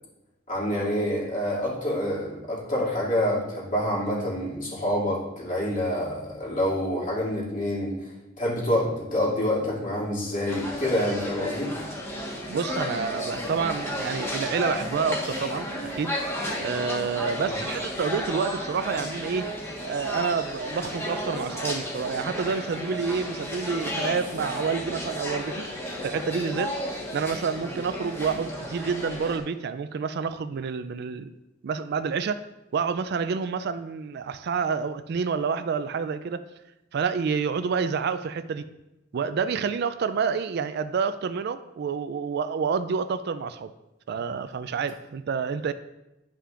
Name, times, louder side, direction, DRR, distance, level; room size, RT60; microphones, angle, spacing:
voice 1, 0.5-7.9 8.4-11.7 17.4-17.6, left 1 dB, 40° left, -5 dB, 2.4 m, -27 dB
sound 1, 10.5-29.4, equal, 15° left, 1.3 m, -33 dB
voice 2, 12.5-15.7 15.9-16.2 16.6-19.5 19.8-25.7 26.0-26.7 27.1-31.3 31.6-32.4 32.7-36.4 36.9-38.6 39.1-43.7 44.1-45.7, right 5 dB, 55° right, 12 dB, 0.3 m, -28 dB
11.0 x 5.6 x 2.5 m, 0.96 s
head